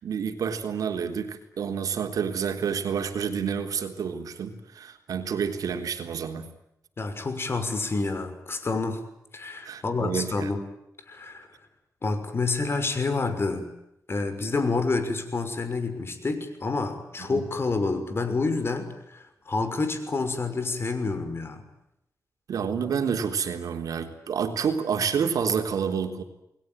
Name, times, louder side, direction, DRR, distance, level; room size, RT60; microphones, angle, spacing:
voice 1, 0.0-6.5 9.6-10.5 17.2-17.4 22.5-26.2, right 7 dB, 85° right, 5 dB, 3.7 m, -29 dB
voice 2, 7.0-9.0 9.3-10.6 11.1-11.5 12.0-13.7 14.1-21.6, left 3 dB, 40° left, 9 dB, 6.0 m, -28 dB
29.5 x 21.0 x 9.1 m, 0.82 s
cardioid pair, 95°, 6 cm